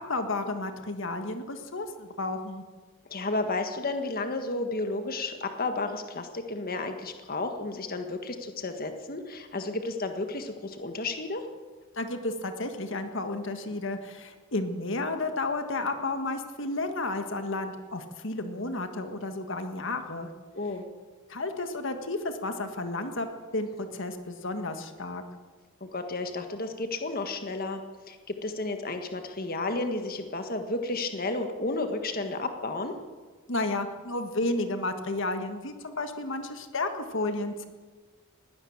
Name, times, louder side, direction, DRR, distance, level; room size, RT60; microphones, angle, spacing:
voice 1, 0.1-2.6 11.9-20.3 21.3-23.3 23.5-25.2 33.5-37.7, left 2 dB, 60° left, 7 dB, 1.7 m, -32 dB
voice 2, 3.1-11.4 20.5-20.9 25.8-27.8 28.1-32.9, left 2 dB, 45° left, 6 dB, 1.7 m, -32 dB
21.0 x 17.0 x 7.4 m, 1.4 s
head